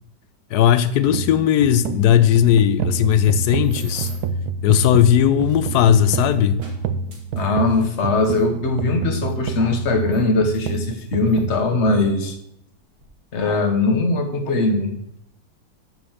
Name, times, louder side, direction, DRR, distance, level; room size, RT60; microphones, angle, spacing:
voice 1, 0.5-4.1 4.6-6.6, left 10 dB, 75° left, 1.1 m, -17 dB
sound 1, 1.1-12.1, right 4 dB, 70° right, 1.1 m, -28 dB
sound 2, 3.3-4.4 5.1-8.5 9.3-9.4 10.0-11.5 12.3-12.4 12.7-13.1, right 3 dB, 85° right, 2.6 m, -46 dB
voice 2, 7.4-12.4 13.3-14.9, left 2 dB, 45° left, 1.3 m, -20 dB
6.5 x 6.0 x 7.1 m
omnidirectional pair, 1.8 m